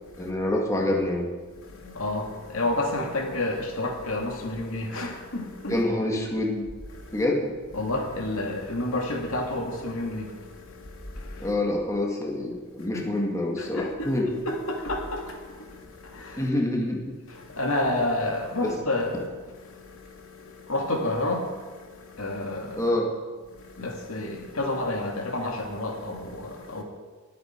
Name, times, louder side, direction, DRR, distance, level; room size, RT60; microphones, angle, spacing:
voice 1, 0.2-1.3 5.7-6.7 7.1-7.6 11.4-14.3 16.4-17.1 18.6-18.7 22.8-23.1, left 1 dB, 15° left, 1.9 m, -26 dB
voice 2, 1.5-5.8 6.9-7.2 7.7-11.5 12.8-13.1 13.6-14.1 14.4-16.5 17.3-22.9 23.5-26.8, left 2 dB, 80° left, 2.4 m, -30 dB
21.0 x 8.7 x 4.6 m
head